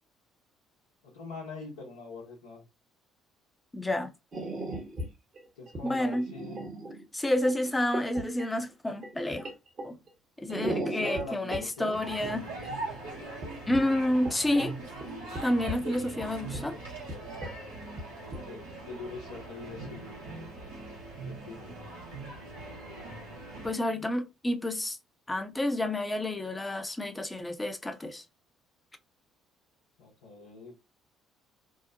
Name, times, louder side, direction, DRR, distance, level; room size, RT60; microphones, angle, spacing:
voice 1, 1.0-2.6 5.6-6.7 10.7-12.0 18.1-20.2 21.3-21.7 30.0-30.8, left 2 dB, 85° left, 0.8 m, -42 dB
voice 2, 3.7-4.1 5.8-6.3 7.1-9.5 9.8-10.0 10.4-12.5 13.7-14.8 15.4-16.8 23.6-25.0 25.3-28.2, left 1 dB, 15° left, 0.6 m, -29 dB
sound 1, 4.3-5.1 5.4-7.0 7.3-8.5 9.0-10.1 10.4-11.6 11.9-12.0 12.2-12.7 13.4-13.5 13.7-14.7 15.0-15.1 15.3-15.8 16.2-16.8 17.1-17.2 17.4-17.5 17.8-18.4, right 1 dB, 45° right, 1.1 m, -36 dB
sound 2, 11.9-23.7, right 2 dB, 85° right, 1.0 m, -41 dB
2.8 x 2.0 x 2.5 m
hypercardioid pair, 55°, 0 cm